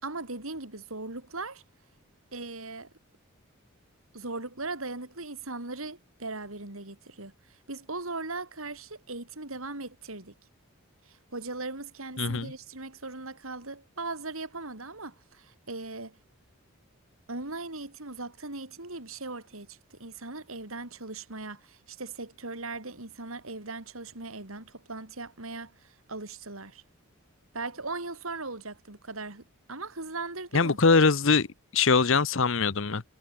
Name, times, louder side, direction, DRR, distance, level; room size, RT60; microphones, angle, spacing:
voice 1, 0.0-1.6 2.3-2.9 4.1-10.3 11.1-16.2 17.3-26.8 27.5-29.4 29.7-30.8, right 3 dB, 75° right, 4.2 m, -39 dB
voice 2, 12.2-12.5 30.5-31.5 31.7-33.0, left 4 dB, 65° left, 0.9 m, -22 dB
head